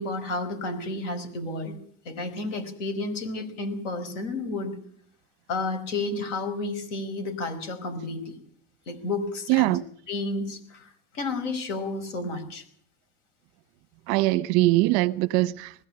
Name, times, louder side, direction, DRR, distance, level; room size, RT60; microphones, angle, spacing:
voice 1, 0.0-1.8 2.1-4.7 5.5-8.4 8.9-9.8 10.1-12.6, left 2 dB, 90° left, 5.4 m, -31 dB
voice 2, 9.5-9.8 14.1-15.7, right 18 dB, 55° right, 0.9 m, -22 dB
20.5 x 17.0 x 8.8 m
cardioid pair, 165°, 36 cm